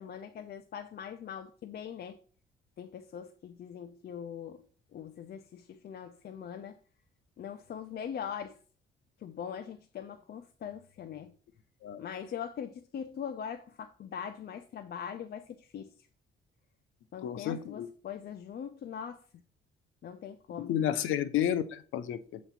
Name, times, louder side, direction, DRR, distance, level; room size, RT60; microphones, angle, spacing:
voice 1, 0.0-2.2 2.8-4.7 4.9-6.8 7.4-8.6 9.2-11.3 12.0-15.9 17.1-19.3 20.0-20.7, left 8 dB, 55° left, 0.6 m, -41 dB
voice 2, 17.2-17.9 20.6-22.4, left 10 dB, 85° left, 0.7 m, -31 dB
7.9 x 3.1 x 5.7 m
cardioid pair, 90°, 20 cm